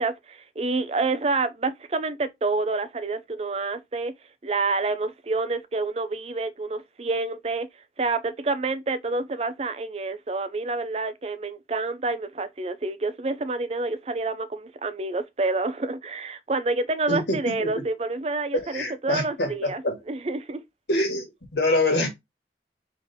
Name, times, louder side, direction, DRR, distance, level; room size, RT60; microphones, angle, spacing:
voice 1, 0.0-4.1 4.4-7.7 8.0-20.6, right 3 dB, 35° right, 0.5 m, -28 dB
voice 2, 17.1-17.8 18.7-19.9 20.9-21.3 21.5-22.1, left 2 dB, 75° left, 1.8 m, -25 dB
4.1 x 3.6 x 3.5 m
head